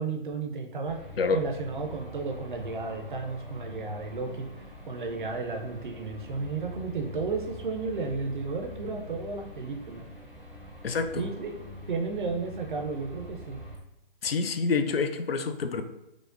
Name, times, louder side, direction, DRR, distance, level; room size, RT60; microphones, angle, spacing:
voice 1, 0.0-1.0 1.3-10.0 11.1-13.6, right 4 dB, 55° right, 3 dB, 0.7 m, -33 dB
sound 1, 0.9-13.8, left 1 dB, 5° left, 0.4 m, -44 dB
voice 2, 10.8-11.2 14.2-15.8, left 4 dB, 80° left, 9 dB, 0.5 m, -27 dB
4.9 x 2.0 x 2.5 m, 0.88 s
figure-of-eight pair, 140°, 29 cm